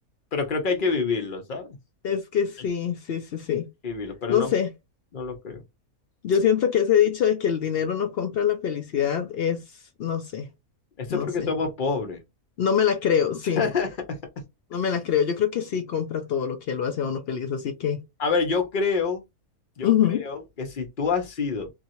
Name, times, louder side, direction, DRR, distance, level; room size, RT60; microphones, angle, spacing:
voice 1, 0.3-1.8 3.8-4.5 5.1-5.6 11.0-12.2 13.6-14.4 18.2-19.2 19.8-21.7, left 4 dB, 45° left, 0.8 m, -27 dB
voice 2, 2.0-3.7 4.3-4.7 6.2-9.6 10.0-10.5 11.1-11.5 12.6-13.7 14.7-18.0 19.8-20.2, left 8 dB, 70° left, 0.5 m, -24 dB
2.9 x 2.7 x 2.6 m
omnidirectional pair, 1.6 m